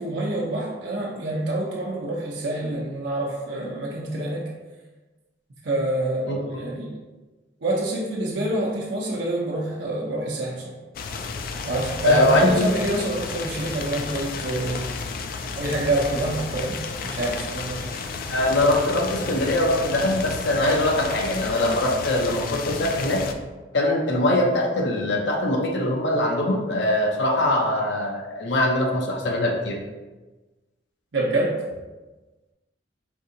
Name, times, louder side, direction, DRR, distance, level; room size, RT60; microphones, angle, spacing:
voice 1, 0.0-4.5 5.6-7.0 7.6-10.7 11.6-14.8 15.6-16.8 17.0-18.0 31.1-31.5, right 1 dB, 80° right, -4 dB, 0.7 m, -27 dB
sound 1, 10.9-23.3, left 4 dB, 50° left, 0.3 m, -32 dB
voice 2, 12.0-12.7 18.3-23.2 23.7-29.8, left 1 dB, 75° left, 1 dB, 0.7 m, -22 dB
4.6 x 2.7 x 3.8 m, 1.2 s
head